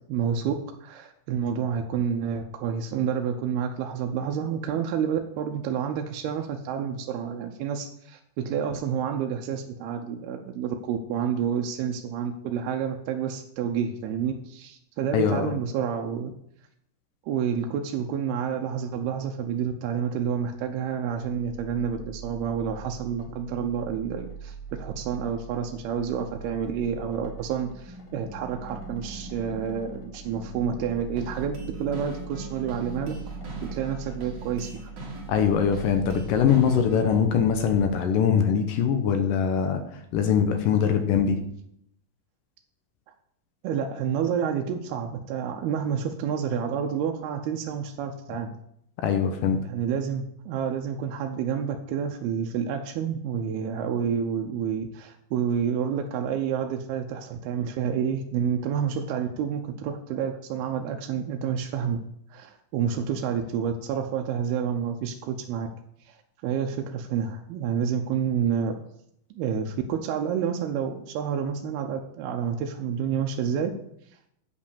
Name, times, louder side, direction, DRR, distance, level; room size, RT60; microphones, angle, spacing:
voice 1, 0.1-0.5 0.8-16.3 17.2-33.4 33.7-34.7 43.6-48.6 49.7-62.0 62.3-65.7 66.1-66.2 66.4-68.8 69.3-73.7, right 7 dB, 80° right, 3 dB, 2.6 m, -29 dB
voice 2, 15.1-15.5 35.3-41.4 49.0-49.6, left 7 dB, 75° left, 6 dB, 2.1 m, -22 dB
sound 1, 21.0-37.9, right 4 dB, 35° left, 1.4 m, -41 dB
sound 2, 31.2-37.2, right 2 dB, 45° right, 2.5 m, -42 dB
8.3 x 5.3 x 7.0 m, 0.72 s
omnidirectional pair, 4.7 m